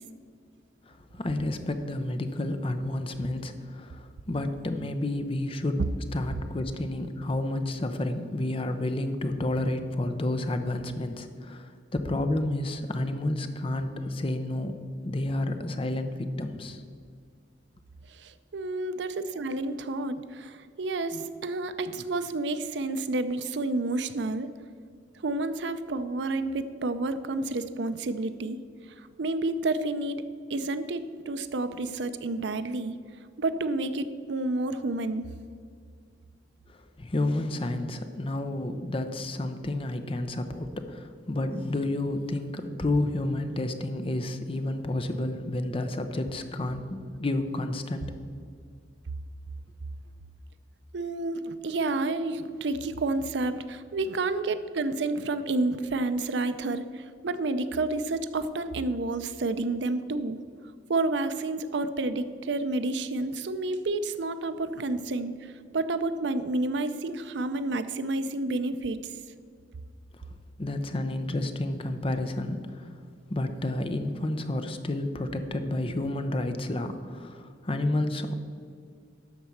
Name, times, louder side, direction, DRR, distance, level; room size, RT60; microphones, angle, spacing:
voice 1, 0.9-5.8 6.1-14.8 15.0-16.8 36.7-48.1 70.1-70.2 70.6-72.9 73.3-78.3, left 1 dB, 30° left, 8 dB, 0.7 m, -30 dB
voice 2, 18.1-24.5 25.2-28.6 29.0-30.2 30.5-33.0 33.4-35.3 50.9-60.4 60.9-69.1, right 2 dB, 70° right, 11 dB, 0.5 m, -30 dB
12.0 x 4.3 x 7.1 m, 2.2 s
head